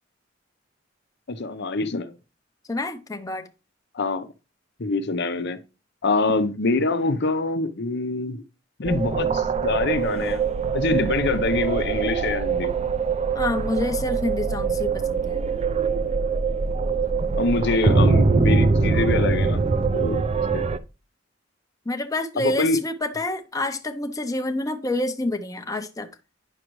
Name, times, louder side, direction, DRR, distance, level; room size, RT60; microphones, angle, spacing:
voice 1, 1.3-2.1 3.9-4.3 4.8-5.6 6.0-8.4 8.8-10.4 10.7-12.7 17.3-19.7 19.9-20.3 20.5-20.7 22.4-22.8, left 3 dB, 60° left, 0.8 m, -25 dB
voice 2, 2.7-3.5 13.3-15.4 21.9-26.1, left 2 dB, 20° left, 0.7 m, -28 dB
sound 1, 8.8-20.8, right 4 dB, 35° right, 0.5 m, -23 dB
9.9 x 6.4 x 3.1 m
head